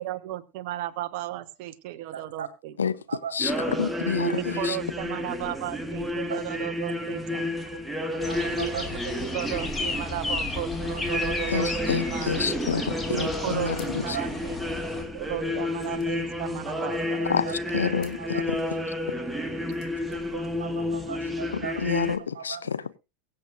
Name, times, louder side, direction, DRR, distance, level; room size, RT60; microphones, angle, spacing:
voice 1, 0.0-2.7 4.2-7.6 8.6-12.3 13.1-14.6 15.1-17.2, right 15 dB, 50° right, 1.1 m, -35 dB
voice 2, 2.1-2.5 3.1-3.7 6.3-6.4 7.7-8.8 10.3-10.4 13.4-13.5 14.1-14.2 17.2-17.5 18.2-18.4 20.0-22.6, right 8 dB, 70° right, 2.0 m, -39 dB
voice 3, 3.3-4.8 11.5-14.2 17.2-17.5 17.7-18.6 21.5-22.8, left 6 dB, 75° left, 0.7 m, -29 dB
sound 1, 3.4-22.2, left 1 dB, 5° right, 1.6 m, -31 dB
sound 2, 8.2-15.0, left 3 dB, 10° left, 2.7 m, -34 dB
sound 3, 13.7-14.3 14.6-14.7 14.9-17.1 17.9-18.3 19.4-20.0, left 10 dB, 45° left, 3.0 m, -54 dB
23.0 x 7.8 x 2.5 m
figure-of-eight pair, 85°, 0 cm